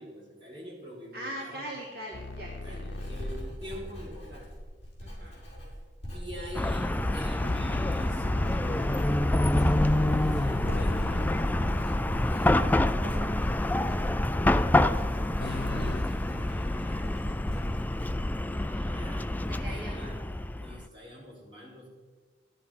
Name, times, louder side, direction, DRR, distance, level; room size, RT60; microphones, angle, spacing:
voice 1, 0.0-1.7 2.6-4.5 6.1-9.2 10.0-14.6 15.4-17.3 18.9-20.2 20.5-21.9, equal, 30° right, -5 dB, 5.3 m, -46 dB
voice 2, 1.1-3.1 5.0-5.3 18.5-19.0 19.5-20.2, right 1 dB, 60° right, -4 dB, 2.9 m, -41 dB
sound 1, 2.1-3.5 7.4-11.5 15.4-16.0, left 3 dB, 90° left, 0.9 m, -38 dB
Writing, 2.3-19.2 19.5-20.0, equal, 35° left, 5.4 m, -40 dB
Chatter / Car passing by / Traffic noise roadway noise, 6.5-20.8, left 1 dB, 10° left, 0.4 m, -27 dB
13.5 x 11.0 x 6.0 m, 1.4 s
head